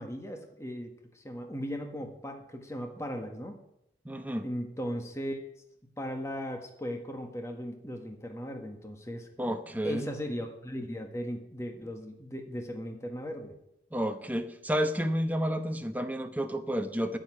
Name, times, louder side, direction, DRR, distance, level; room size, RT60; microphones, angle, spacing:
voice 1, 0.0-3.6 4.4-5.4 5.8-9.3 9.8-13.6, equal, 15° left, 4 dB, 1.6 m, -37 dB
voice 2, 4.0-4.5 9.4-10.1 13.9-17.2, equal, 10° right, 7 dB, 1.0 m, -31 dB
10.5 x 8.5 x 9.8 m, 0.81 s
head